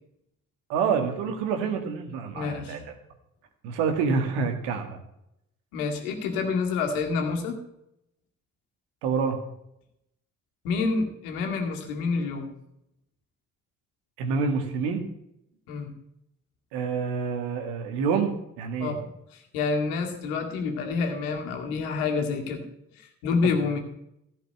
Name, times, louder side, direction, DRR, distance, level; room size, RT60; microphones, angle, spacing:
voice 1, 0.7-2.8 3.6-5.0 9.0-9.4 14.2-15.1 16.7-18.9 23.4-23.5, right 5 dB, 75° right, 6 dB, 1.9 m, -27 dB
voice 2, 2.3-2.8 5.7-7.6 10.6-12.5 15.7-15.9 18.8-19.0 19.3-22.6 23.0-23.8, left 4 dB, 80° left, 3 dB, 2.0 m, -28 dB
15.0 x 5.8 x 8.7 m, 0.79 s
hypercardioid pair, 40°, 43 cm